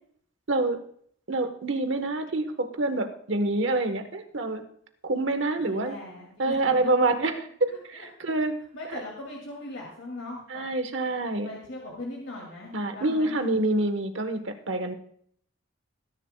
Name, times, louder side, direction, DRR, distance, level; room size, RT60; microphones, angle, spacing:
voice 1, 0.5-0.8 1.3-4.6 5.0-5.9 6.4-8.5 8.9-9.0 10.5-11.5 12.7-14.9, right 2 dB, 70° right, 7 dB, 1.2 m, -27 dB
voice 2, 5.6-6.6 6.8-7.1 7.7-8.1 8.7-10.6 11.2-13.3, left 2 dB, 80° left, -2 dB, 2.5 m, -40 dB
19.5 x 10.5 x 2.3 m, 0.62 s
head